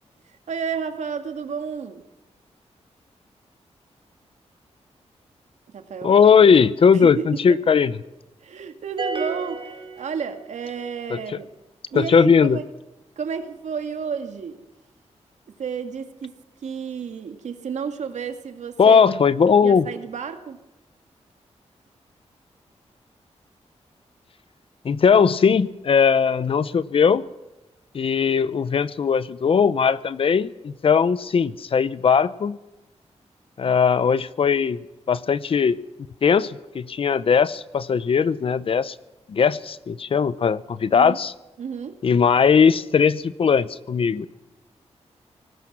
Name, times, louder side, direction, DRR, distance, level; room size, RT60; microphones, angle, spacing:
voice 1, 0.3-2.0 5.7-6.1 6.9-7.6 8.4-11.5 11.9-12.6 13.2-14.6 15.6-16.3 16.6-19.0 19.6-20.6 40.9-41.2 41.6-42.0, right 6 dB, 85° right, 7 dB, 2.1 m, -31 dB
voice 2, 6.0-8.0 11.9-12.6 18.8-19.8 24.8-27.2 27.9-32.6 33.6-34.8 35.1-35.8 36.2-38.9 39.3-41.3 42.0-44.3, left 6 dB, 50° left, 16 dB, 0.8 m, -19 dB
sound 1, 9.0-10.7, right 4 dB, 45° right, 3.1 m, -31 dB
25.5 x 19.0 x 6.1 m, 0.99 s
wide cardioid pair, 155°, 12 cm